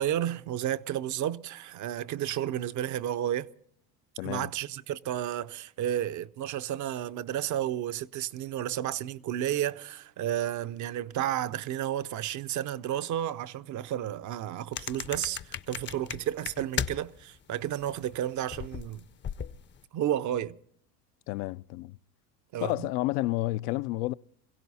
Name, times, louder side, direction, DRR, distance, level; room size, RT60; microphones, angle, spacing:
voice 1, 0.0-3.5 4.2-19.1 19.9-20.6 22.5-22.9, right 11 dB, 40° right, 0.6 m, -32 dB
voice 2, 4.2-4.5 21.3-22.0 22.6-24.1, left 18 dB, 70° left, 0.5 m, -30 dB
sound 1, 14.7-17.2 17.5-19.8, left 8 dB, 25° left, 0.5 m, -36 dB
22.0 x 16.0 x 4.1 m
supercardioid pair, 105°, 49 cm